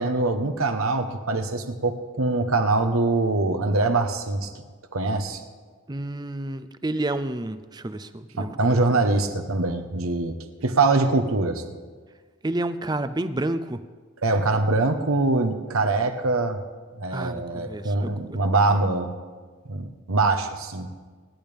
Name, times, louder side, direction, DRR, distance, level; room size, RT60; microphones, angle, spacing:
voice 1, 0.0-4.5 4.9-5.4 8.4-10.3 10.6-11.6 14.2-16.6 17.0-19.2 19.7-20.9, right 3 dB, 90° right, 8 dB, 1.2 m, -23 dB
voice 2, 5.9-9.0 12.4-13.8 17.1-18.4, right 2 dB, 20° right, 11 dB, 0.5 m, -30 dB
25.5 x 10.5 x 3.5 m, 1.5 s
head